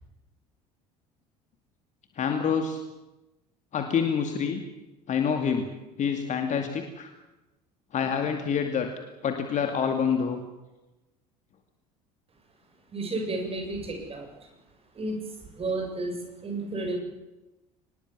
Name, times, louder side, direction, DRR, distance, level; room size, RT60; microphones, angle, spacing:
voice 1, 2.2-2.8 3.7-4.6 5.1-5.7 6.0-7.1 7.9-8.9 9.2-10.4, left 7 dB, 35° left, 5 dB, 2.5 m, -27 dB
voice 2, 12.9-14.3 14.9-15.2 15.5-17.0, right 2 dB, 30° right, 4 dB, 7.1 m, -32 dB
24.0 x 20.5 x 7.4 m, 1.0 s
figure-of-eight pair, 65°, 20 cm